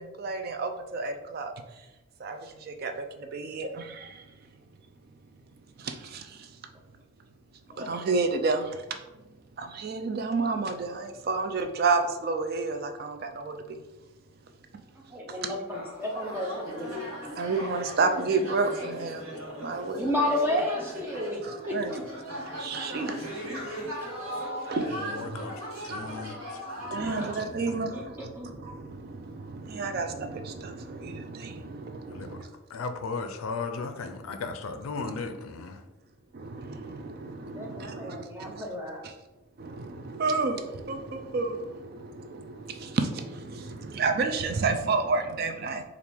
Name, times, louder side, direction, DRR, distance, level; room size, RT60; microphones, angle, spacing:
voice 1, 0.0-1.9 2.2-4.3 5.8-6.5 7.8-8.8 9.6-13.8 17.4-19.3 19.6-20.1 21.4-22.0 22.4-23.6 24.7-25.4 25.9-26.3 26.8-32.5 35.1-35.2 36.3-38.7 39.0-39.1 39.6-45.8, right 4 dB, 45° right, 7 dB, 0.3 m, -31 dB
voice 2, 14.9-17.4 19.9-21.4 21.7-22.0 27.2-27.3 27.9-28.0 28.4-28.6 37.5-39.0, left 1 dB, 10° right, -2 dB, 0.6 m, -32 dB
sound 1, 15.7-27.3, equal, 70° right, 1.1 m, -38 dB
voice 3, 24.9-26.6 26.9-27.9 32.1-32.4 32.7-35.8, left 4 dB, 80° left, 7 dB, 0.4 m, -37 dB
4.4 x 2.5 x 3.4 m, 1.1 s
head